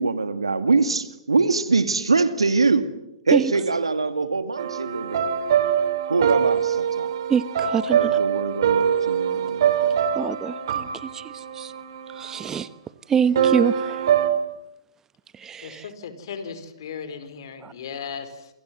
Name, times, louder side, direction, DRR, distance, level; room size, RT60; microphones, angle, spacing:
voice 1, 0.0-2.9 3.3-5.3 6.1-7.1 7.9-10.0, right 4 dB, 90° right, 2.3 m, -23 dB
sound 1, 4.6-12.6 13.4-14.3, right 8 dB, 60° right, 3.4 m, -23 dB
voice 2, 7.3-8.1 10.1-11.7 12.1-12.7 13.1-14.1 15.4-15.9 17.6-17.7, right 7 dB, 15° right, 1.0 m, -25 dB
voice 3, 15.6-18.5, left 6 dB, 60° left, 4.7 m, -36 dB
28.5 x 25.5 x 7.7 m
hypercardioid pair, 120°, 3 cm